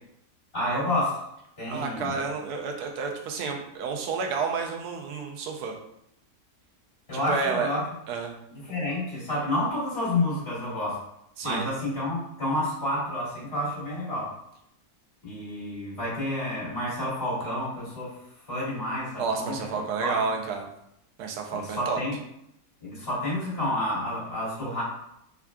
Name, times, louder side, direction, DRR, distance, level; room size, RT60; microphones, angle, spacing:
voice 1, 0.5-1.3 1.6-2.2 7.1-7.8 8.5-11.0 11.4-14.3 15.2-18.1 18.4-20.2 21.5-22.2 22.8-24.8, left 1 dB, 20° left, -10 dB, 1.5 m, -29 dB
voice 2, 1.7-5.7 7.3-7.7 8.1-8.3 11.4-11.6 19.2-20.7 21.2-22.0, right 5 dB, 75° right, 2 dB, 1.0 m, -30 dB
3.4 x 2.4 x 2.2 m, 0.78 s
omnidirectional pair, 1.8 m